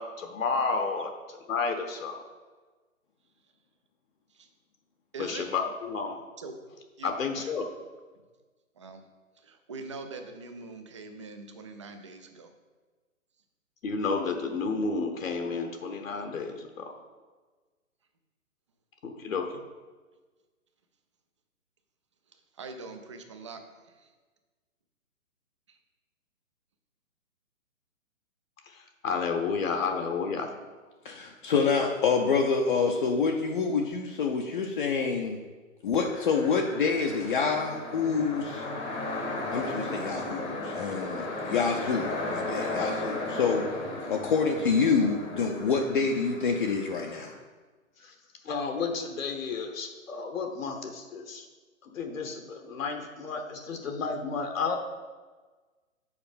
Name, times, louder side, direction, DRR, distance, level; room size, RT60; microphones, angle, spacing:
voice 1, 0.0-2.2 5.2-6.2 7.0-7.7 13.8-17.0 19.0-19.5 29.0-30.5 48.0-48.1 48.4-51.5 51.8-54.8, left 4 dB, 70° left, 4 dB, 1.1 m, -31 dB
voice 2, 5.1-5.5 6.4-6.5 7.0-7.5 8.8-9.0 9.4-12.5 22.5-24.1 25.7-25.8, right 3 dB, 25° right, 6 dB, 0.4 m, -43 dB
voice 3, 31.0-35.4 35.8-38.7 39.5-43.7 44.1-47.3, left 5 dB, 40° left, 1 dB, 0.6 m, -27 dB
sound 1, 36.0-47.3, left 2 dB, 10° left, 0.8 m, -35 dB
7.1 x 4.8 x 5.1 m, 1.3 s
hypercardioid pair, 140°, 41 cm